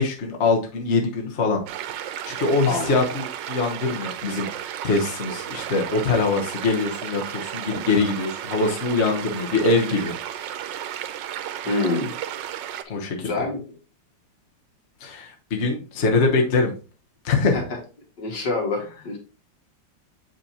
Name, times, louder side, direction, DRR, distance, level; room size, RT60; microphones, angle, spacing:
voice 1, 0.0-1.6 2.2-10.1 10.4-10.5 12.9-13.3 15.0-16.7 17.2-17.6, left 3 dB, 45° left, 1 dB, 1.3 m, -23 dB
sound 1, 1.7-12.8, right 10 dB, 90° right, 1.3 m, -33 dB
voice 2, 2.7-3.0 11.6-12.1 13.2-13.6 17.5-17.6 18.2-19.2, left 3 dB, 70° left, 0 dB, 2.6 m, -26 dB
7.1 x 5.4 x 2.9 m, 0.34 s
omnidirectional pair, 1.9 m